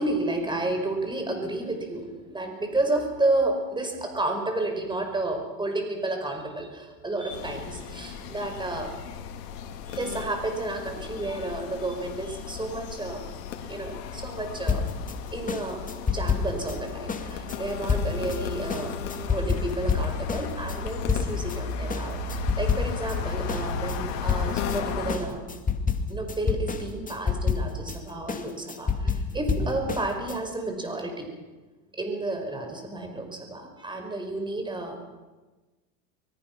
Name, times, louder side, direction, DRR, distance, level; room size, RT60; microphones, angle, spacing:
voice 1, 0.0-8.9 9.9-13.2 13.7-14.9 15.3-18.9 19.3-25.4 26.1-31.3 32.0-35.0, right 2 dB, 10° right, 4 dB, 5.1 m, -31 dB
sound 1, 7.3-25.2, left 5 dB, 70° left, 3.7 m, -35 dB
sound 2, 14.7-21.6 21.9-23.2 23.5-30.4, left 5 dB, 15° left, 2.2 m, -28 dB
24.0 x 22.5 x 6.1 m, 1.2 s
supercardioid pair, 110°, 49 cm